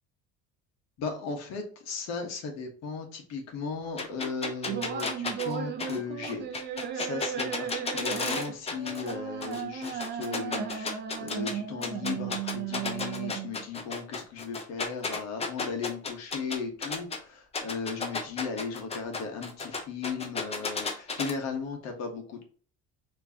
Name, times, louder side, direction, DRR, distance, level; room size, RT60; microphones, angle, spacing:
voice 1, 1.0-22.4, left 5 dB, 60° left, 3 dB, 1.5 m, -36 dB
sound 1, 4.0-9.1 9.4-11.5 11.8-17.2 17.5-21.3, left 4 dB, 20° left, 0.7 m, -33 dB
sound 2, 4.7-13.7, right 9 dB, 35° right, 0.6 m, -36 dB
4.5 x 3.2 x 2.8 m, 0.43 s
cardioid pair, 155°, 30 cm